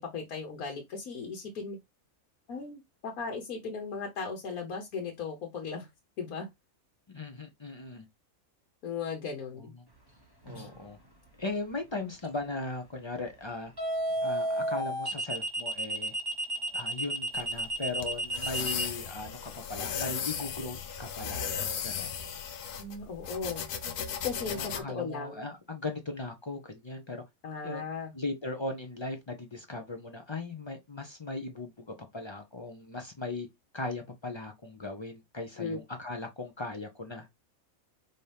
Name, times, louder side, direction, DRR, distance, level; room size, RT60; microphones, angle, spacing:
voice 1, 0.0-1.8 2.5-5.9 6.2-6.5 8.8-9.7 10.5-10.7 22.8-23.7 24.2-25.5 27.4-28.1 35.6-35.8, left 5 dB, 85° left, 1.5 m, -37 dB
voice 2, 7.1-8.0 9.6-9.8 10.4-11.0 11.4-13.7 14.2-16.1 16.7-21.5 21.8-22.1 24.5-27.2 27.6-27.8 28.1-31.8 32.1-33.5 33.7-37.3, left 2 dB, 45° left, 0.3 m, -38 dB
sound 1, 10.5-10.8 13.8-18.9, right 1 dB, 15° right, 1.1 m, -31 dB
sound 2, 17.3-24.8, left 7 dB, 70° left, 1.0 m, -36 dB
5.1 x 2.8 x 3.3 m
omnidirectional pair, 1.5 m